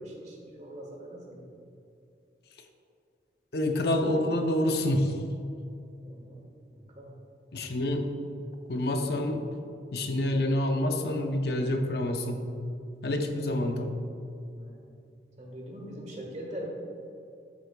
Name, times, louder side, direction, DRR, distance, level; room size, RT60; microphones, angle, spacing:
voice 1, 0.0-1.5 6.0-7.1 14.5-15.0 15.4-16.7, right 1 dB, 40° right, -1 dB, 1.5 m, -43 dB
voice 2, 3.5-5.1 7.5-8.1 8.7-9.4 9.9-12.5 13.0-13.9, left 1 dB, 60° left, 4 dB, 0.7 m, -27 dB
12.0 x 6.6 x 2.3 m, 2.6 s
head